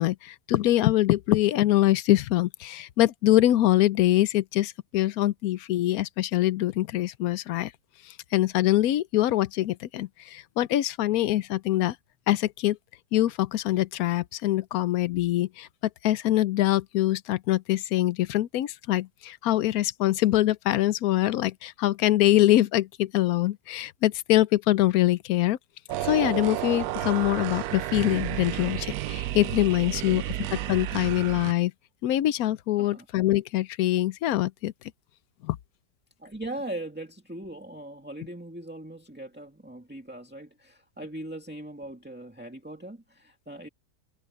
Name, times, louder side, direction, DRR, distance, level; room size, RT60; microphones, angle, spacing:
voice 1, 0.0-7.7 8.3-12.0 12.3-12.8 13.1-15.7 16.0-25.6 26.0-30.2 30.5-31.7 32.0-34.7 35.4-35.6, left 14 dB, 75° left, 1.1 m, -24 dB
sound 1, 25.9-31.5, right 14 dB, 75° right, 1.0 m, -31 dB
voice 2, 36.2-43.7, right 1 dB, 5° right, 2.1 m, -40 dB
omnidirectional pair, 1.6 m